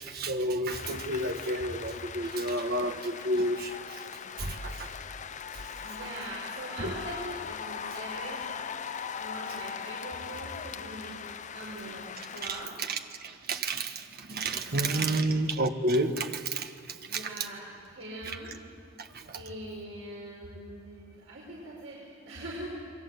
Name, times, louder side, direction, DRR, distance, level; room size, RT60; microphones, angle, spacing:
voice 1, 0.0-3.7 4.4-4.9 6.8-6.9 12.9-13.0 13.5-14.0 14.3-16.7 17.1-17.2, right 1 dB, 50° right, 6 dB, 1.5 m, -30 dB
sound 1, 0.7-12.7, left 7 dB, 35° left, 0.6 m, -40 dB
voice 2, 5.5-8.9 9.2-11.2 11.5-12.7 14.7-15.2 17.0-18.5 19.3-22.7, right 1 dB, 75° right, -5 dB, 5.8 m, -42 dB
28.5 x 22.5 x 8.2 m, 2.3 s
head